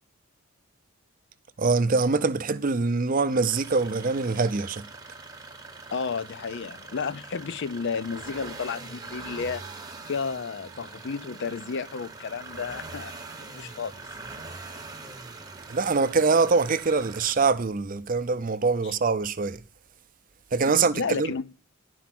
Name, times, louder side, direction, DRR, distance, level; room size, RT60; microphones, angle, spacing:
voice 1, 1.6-4.8 15.7-19.6 20.5-21.3, right 4 dB, 35° right, 0.5 m, -24 dB
sound 1, 3.2-17.3, right 3 dB, 15° right, 0.9 m, -43 dB
voice 2, 5.9-9.6 10.1-14.0 18.8-18.9 20.7-21.4, left 5 dB, 55° left, 0.4 m, -32 dB
11.0 x 4.7 x 5.9 m
head